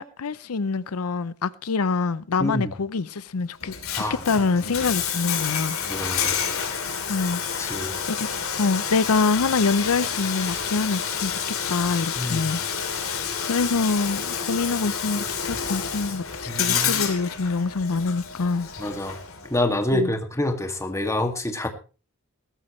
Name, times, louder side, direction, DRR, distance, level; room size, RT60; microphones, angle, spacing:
voice 1, 0.0-5.8 7.1-8.3 8.6-11.4 11.7-12.6 12.9-18.7 19.9-20.1, left 4 dB, 85° left, 0.6 m, -25 dB
voice 2, 2.4-2.7 4.0-4.2 5.9-6.4 7.6-7.9 12.2-12.5 16.5-17.0 18.8-19.2 19.5-21.7, left 1 dB, 15° left, 2.2 m, -27 dB
Bathtub (filling or washing), 3.6-19.6, left 7 dB, 65° left, 3.1 m, -29 dB
18.5 x 14.0 x 3.2 m
head